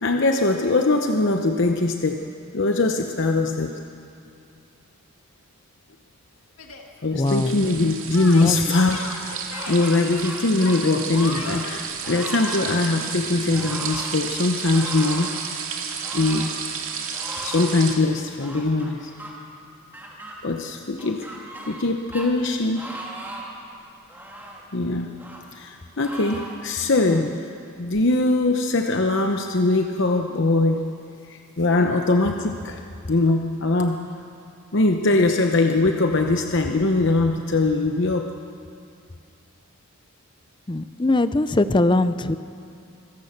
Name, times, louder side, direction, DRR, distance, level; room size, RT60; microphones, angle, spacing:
voice 1, 0.0-2.3 2.5-3.8 7.0-9.3 9.7-15.3 16.1-16.5 17.4-19.1 20.4-21.3 21.7-22.9 24.7-25.1 25.5-27.3 27.8-30.9 31.3-32.8 33.1-34.0 34.7-38.3, left 2 dB, 60° left, 4 dB, 0.9 m, -21 dB
Yell, 6.6-6.9 8.1-9.8 10.6-11.8, left 4 dB, 85° left, 2.0 m, -36 dB
voice 2, 7.1-7.6 8.4-8.6 27.1-27.3 40.7-42.3, left 2 dB, 20° left, 12 dB, 0.6 m, -21 dB
sound 1, 7.2-18.0, right 7 dB, 75° right, 2.2 m, -32 dB
sound 2, 9.5-10.4 10.7-11.7 12.0-12.7 13.5-14.1 14.7-15.4 16.0-16.5 17.1-17.7 18.4-19.3 19.9-20.3 21.0-21.9 22.1-22.3 22.7-23.5 24.1-24.6 25.2-25.4 26.0-26.6, right 1 dB, 10° right, 2.7 m, -37 dB
25.5 x 16.5 x 6.7 m, 2.5 s
head